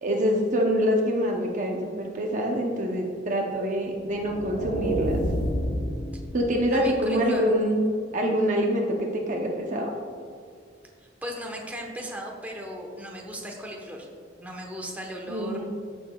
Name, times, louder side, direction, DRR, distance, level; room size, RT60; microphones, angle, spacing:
voice 1, 0.0-5.2 6.3-7.8 8.1-9.9 15.3-15.6, equal, 40° right, 0 dB, 0.8 m, -25 dB
sound 1, 4.0-6.9, equal, 80° left, 1.0 m, -29 dB
voice 2, 6.7-7.4 11.2-14.1 14.4-15.6, equal, 10° right, -1 dB, 1.1 m, -37 dB
14.5 x 6.2 x 2.3 m, 2.2 s
head